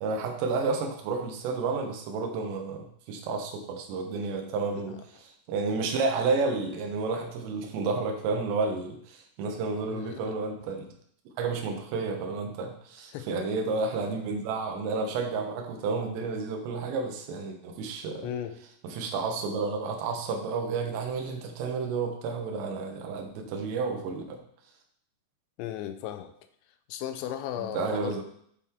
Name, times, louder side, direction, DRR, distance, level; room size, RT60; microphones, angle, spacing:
voice 1, 0.0-10.8 11.4-18.3 18.8-24.4 27.7-28.2, right 4 dB, 80° right, 2 dB, 3.1 m, -31 dB
voice 2, 9.8-10.3 13.1-13.3 18.2-18.5 25.6-26.3 26.9-28.2, left 10 dB, 85° left, 8 dB, 2.9 m, -36 dB
8.0 x 4.3 x 3.6 m, 0.66 s
omnidirectional pair, 5.1 m